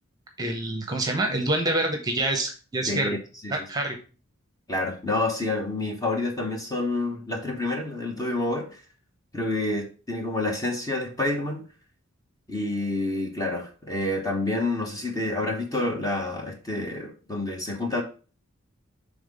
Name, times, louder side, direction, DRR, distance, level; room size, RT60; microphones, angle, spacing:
voice 1, 0.4-3.2 3.5-4.0, right 2 dB, 20° right, 3 dB, 1.0 m, -26 dB
voice 2, 2.9-3.2 3.4-3.7 4.7-8.8 9.3-11.6 12.5-18.0, left 2 dB, 15° left, 1 dB, 1.1 m, -28 dB
5.7 x 3.6 x 5.4 m, 0.36 s
head